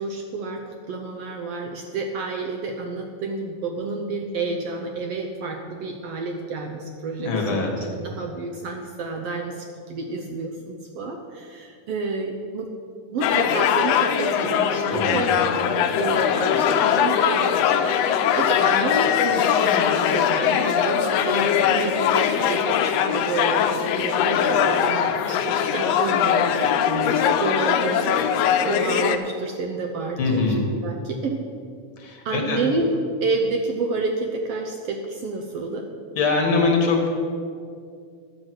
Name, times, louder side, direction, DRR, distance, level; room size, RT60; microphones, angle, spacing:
voice 1, 0.0-7.7 8.0-12.7 13.1-15.4 15.8-23.7 24.0-28.3 28.6-30.5 30.8-31.4 32.2-32.9 33.2-35.8, right 3 dB, 75° right, 3 dB, 1.5 m, -29 dB
voice 2, 7.2-7.7 14.9-15.4 30.2-30.6 32.0-32.6 36.2-37.1, left 4 dB, 50° left, 2 dB, 1.9 m, -23 dB
sound 1, 13.2-29.2, left 8 dB, 80° left, 1.5 m, -21 dB
10.5 x 8.0 x 6.2 m, 2.3 s
omnidirectional pair, 3.5 m